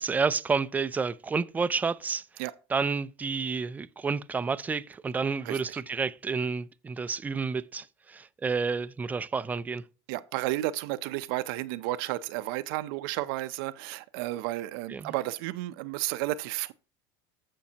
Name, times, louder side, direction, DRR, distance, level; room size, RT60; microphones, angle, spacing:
voice 1, 0.0-2.3 2.7-9.8 14.9-15.1, right 5 dB, 15° right, 0.4 m, -30 dB
voice 2, 5.4-5.8 10.1-16.7, right 17 dB, 70° right, 0.5 m, -32 dB
14.5 x 5.3 x 2.8 m
supercardioid pair, 130°, 12 cm